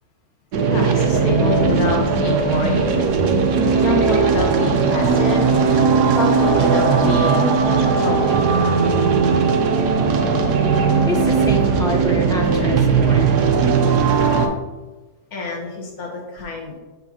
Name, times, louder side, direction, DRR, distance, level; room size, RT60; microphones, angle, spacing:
sound 1, 0.5-14.5, right 5 dB, 90° right, 1.3 m, -17 dB
voice 1, 0.6-3.0 3.7-5.4 6.1-8.5 15.3-16.7, left 3 dB, 70° left, 0 dB, 1.6 m, -26 dB
voice 2, 11.1-13.4, equal, 5° left, 0 dB, 0.4 m, -27 dB
6.8 x 5.5 x 2.8 m, 1.2 s
omnidirectional pair, 1.7 m